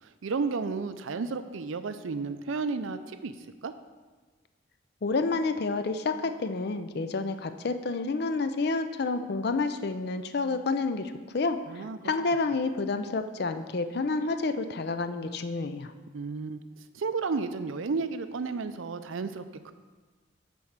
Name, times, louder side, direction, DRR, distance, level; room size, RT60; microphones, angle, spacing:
voice 1, 0.0-3.3 3.6-3.7 11.7-12.0 16.1-16.6 16.9-19.7, right 4 dB, 80° right, 10 dB, 0.5 m, -32 dB
voice 2, 5.0-15.9, left 3 dB, 55° left, 9 dB, 0.5 m, -29 dB
6.9 x 4.6 x 6.5 m, 1.3 s
head